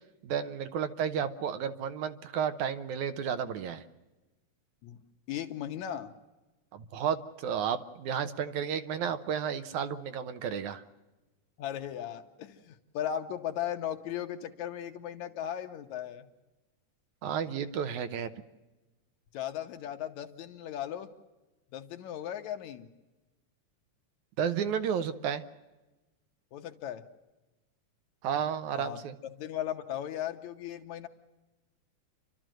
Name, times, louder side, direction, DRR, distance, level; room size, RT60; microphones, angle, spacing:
voice 1, 0.2-3.8 6.7-10.8 17.2-18.3 24.4-25.4 28.2-29.2, right 8 dB, 80° right, 10 dB, 2.3 m, -32 dB
voice 2, 5.3-6.1 11.6-16.3 19.3-21.1 21.7-22.9 26.5-27.0 28.7-31.1, left 10 dB, 80° left, 6 dB, 2.4 m, -37 dB
29.5 x 12.5 x 7.7 m, 1.1 s
omnidirectional pair, 3.4 m